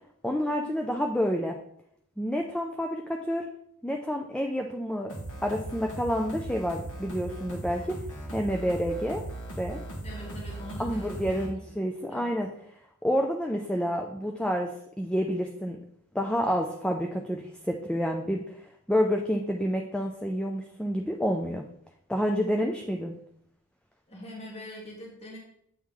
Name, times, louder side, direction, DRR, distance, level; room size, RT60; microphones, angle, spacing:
voice 1, 0.2-1.6 2.2-3.5 3.8-5.1 5.4-7.8 8.3-9.2 9.6-9.8 10.8-12.5 13.0-14.7 15.0-15.8 16.1-18.4 18.9-21.7 22.1-23.1, equal, 5° left, 2 dB, 0.4 m, -28 dB
sound 1, 5.1-11.5, right 1 dB, 60° left, 1.7 m, -38 dB
voice 2, 10.0-11.8 12.1-12.3 24.1-25.4, left 1 dB, 30° left, -2 dB, 1.3 m, -43 dB
8.3 x 3.1 x 3.7 m, 0.70 s
head